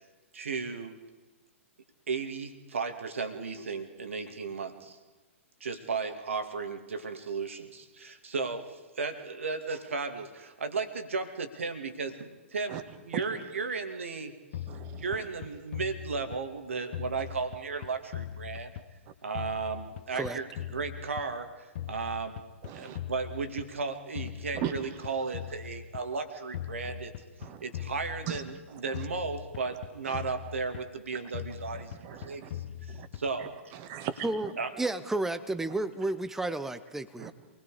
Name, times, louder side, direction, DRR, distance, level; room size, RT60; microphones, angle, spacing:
voice 1, 0.3-1.0 2.1-5.0 5.6-12.8 13.1-14.3 15.0-18.8 19.2-22.4 22.7-27.1 27.6-28.4 28.8-33.5 34.6-34.7, right 4 dB, 70° right, 8 dB, 2.5 m, -35 dB
voice 2, 13.1-13.5 14.7-15.3 19.1-19.2 20.1-20.3 22.6-23.0 24.2-25.5 26.8-26.9 27.4-27.6 28.3-28.4 28.7-29.1 29.7-29.8 30.0-30.3 31.5-32.5 32.9-33.1 33.4-34.6 35.0-35.1 37.2-37.3, right 9 dB, 35° right, 8 dB, 2.2 m, -40 dB
sound 1, 14.5-16.6 16.9-19.1 19.4-21.5 21.8-23.9 24.2-26.1 26.5-28.6 28.9-31.0 31.3-33.5, left 11 dB, 50° left, 1.0 m, -41 dB
voice 3, 34.8-37.3, right 2 dB, 5° right, 12 dB, 0.9 m, -32 dB
27.5 x 20.5 x 5.0 m, 1.2 s
figure-of-eight pair, 110°, 7 cm